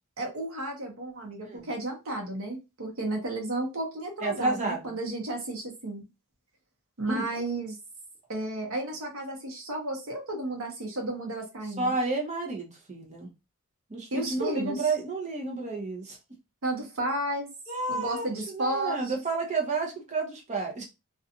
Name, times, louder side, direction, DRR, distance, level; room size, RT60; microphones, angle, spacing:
voice 1, 0.2-6.0 7.0-7.8 8.3-11.9 14.1-14.9 16.6-17.5 17.9-19.1, right 1 dB, 75° right, 0.9 m, -33 dB
voice 2, 4.2-5.0 7.0-7.4 11.6-13.3 13.9-16.2 17.7-20.8, right 3 dB, 35° right, 0.8 m, -31 dB
2.5 x 2.3 x 2.7 m
head